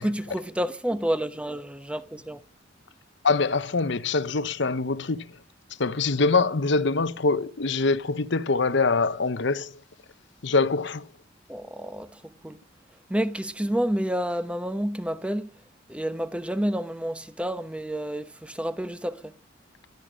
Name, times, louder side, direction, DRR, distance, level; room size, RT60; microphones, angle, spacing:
voice 1, 0.0-2.4 11.5-12.1 12.4-12.6 13.1-15.5 15.9-19.2, equal, 5° right, 0.9 m, -29 dB
voice 2, 3.2-5.4 5.8-9.8 10.4-11.1, left 3 dB, 65° left, 0.9 m, -24 dB
16.0 x 12.0 x 6.4 m
head